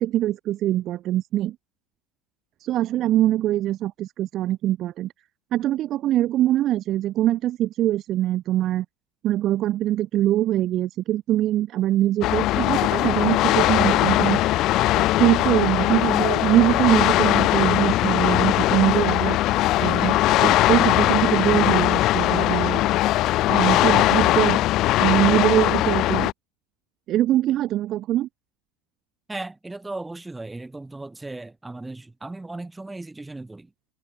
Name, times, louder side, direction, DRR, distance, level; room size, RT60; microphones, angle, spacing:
voice 1, 0.0-1.5 2.6-5.1 5.5-8.8 9.2-14.4 15.0-19.4 19.8-22.9 23.5-24.6 25.0-26.3 27.1-28.3, right 13 dB, 35° right, 2.4 m, -23 dB
sound 1, 12.2-26.3, left 16 dB, 40° left, 0.9 m, -20 dB
voice 2, 29.3-33.7, right 2 dB, 5° right, 4.9 m, -36 dB
cardioid pair, 170°, 0 cm